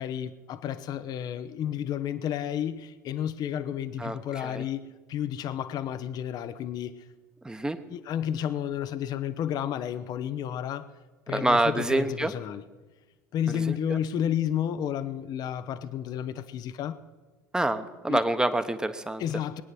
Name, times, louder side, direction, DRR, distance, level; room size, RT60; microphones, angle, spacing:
voice 1, 0.0-7.0 7.9-10.9 11.3-12.6 13.3-17.0 18.1-18.2 19.2-19.6, left 9 dB, 45° left, 0.8 m, -31 dB
voice 2, 7.4-7.8 11.3-12.3 13.9-14.0 17.5-19.2, right 2 dB, 10° right, 1.2 m, -26 dB
21.0 x 9.4 x 6.1 m
figure-of-eight pair, 70°, 9 cm